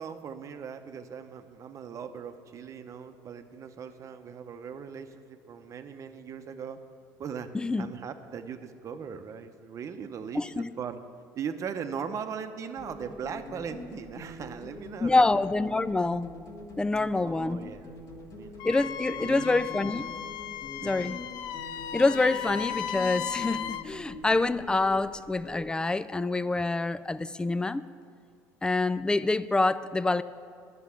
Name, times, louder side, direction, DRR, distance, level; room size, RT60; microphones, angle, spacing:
voice 1, 0.0-6.8 7.2-7.5 7.8-11.0 11.4-15.3 17.1-18.6 19.2-19.7 20.8-21.2, right 7 dB, 45° right, 8 dB, 0.8 m, -39 dB
voice 2, 7.5-7.9 10.3-10.7 15.0-16.3 16.8-17.7 18.6-20.1 20.8-21.2 21.9-27.8 28.6-30.2, left 3 dB, 10° left, 15 dB, 0.4 m, -26 dB
sound 1, 12.8-25.7, left 2 dB, 50° left, 1.8 m, -44 dB
Wind instrument woodwind instrument, 18.6-23.9, left 10 dB, 70° left, 0.5 m, -36 dB
10.5 x 6.8 x 8.4 m, 2.2 s
supercardioid pair, 90°, 7 cm